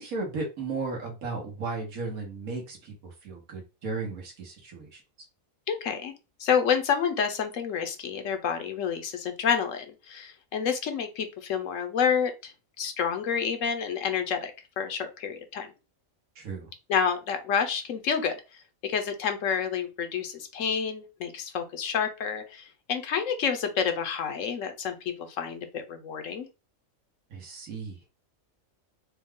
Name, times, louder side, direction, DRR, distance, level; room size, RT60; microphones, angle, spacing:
voice 1, 0.0-5.0 16.3-16.7 27.3-28.0, right 3 dB, 80° right, 0 dB, 1.7 m, -35 dB
voice 2, 5.7-6.1 6.4-15.7 16.9-26.5, left 7 dB, 70° left, 7 dB, 1.0 m, -29 dB
4.6 x 2.3 x 3.6 m, 0.29 s
omnidirectional pair, 1.5 m